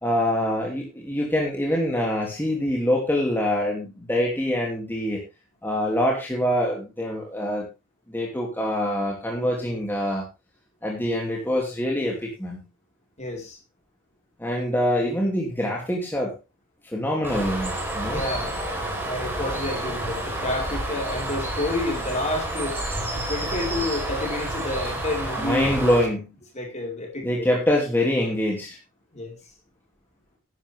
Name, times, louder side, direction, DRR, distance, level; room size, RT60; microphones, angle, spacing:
voice 1, 0.0-5.2 5.6-7.7 8.1-10.2 10.8-12.6 14.4-16.3 16.9-18.2 25.4-26.3 27.2-28.8, left 1 dB, 10° left, -2 dB, 2.7 m, -25 dB
voice 2, 13.2-13.6 18.0-18.5 18.9-22.8 23.3-25.8 26.5-27.5 29.1-29.4, left 2 dB, 35° left, 1 dB, 4.5 m, -30 dB
Bird, 17.2-26.0, right 1 dB, 10° right, 4.1 m, -29 dB
12.5 x 11.0 x 3.5 m, 0.28 s
head